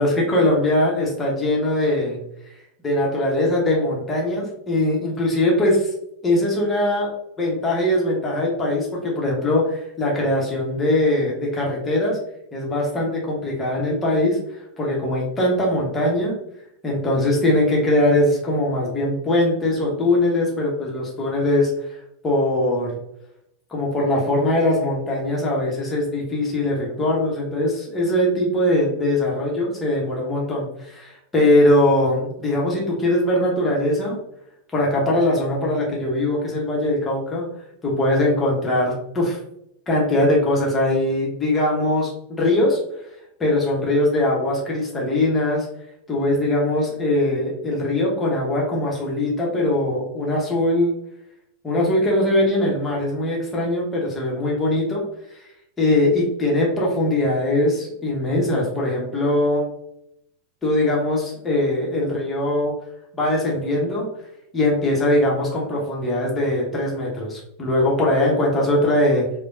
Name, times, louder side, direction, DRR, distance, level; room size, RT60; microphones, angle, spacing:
voice 1, 0.0-2.2 2.8-5.7 6.2-7.1 7.4-12.2 12.5-14.4 14.8-16.4 16.8-21.9 22.2-23.0 23.7-34.2 34.7-37.5 37.8-39.4 39.9-42.1 42.4-42.8 43.4-45.7 46.1-50.9 51.6-55.0 55.8-59.7 60.6-62.8 63.1-64.1 64.5-69.3, left 1 dB, 15° left, -4 dB, 0.9 m, -21 dB
3.2 x 2.1 x 2.6 m, 0.77 s
figure-of-eight pair, 90°, 0 cm